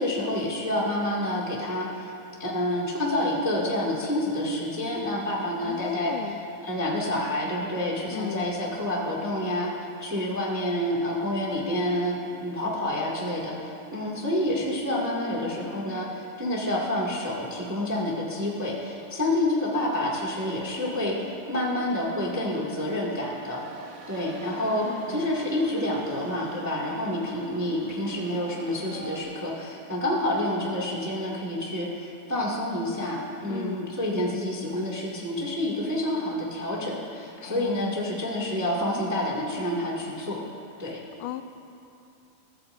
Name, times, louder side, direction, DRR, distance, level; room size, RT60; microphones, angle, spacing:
voice 1, 0.0-2.1 2.4-9.7 10.0-23.6 24.1-40.4 40.8-41.0, left 1 dB, 10° right, -4 dB, 1.2 m, -28 dB
voice 2, 5.7-6.4 8.1-8.5 24.8-25.3 33.5-34.0 37.4-37.9 41.2-41.4, left 11 dB, 85° left, 10 dB, 2.2 m, -35 dB
sound 1, 17.7-29.2, right 3 dB, 85° right, 3.1 m, -47 dB
23.5 x 15.0 x 2.7 m, 2.6 s
omnidirectional pair, 3.8 m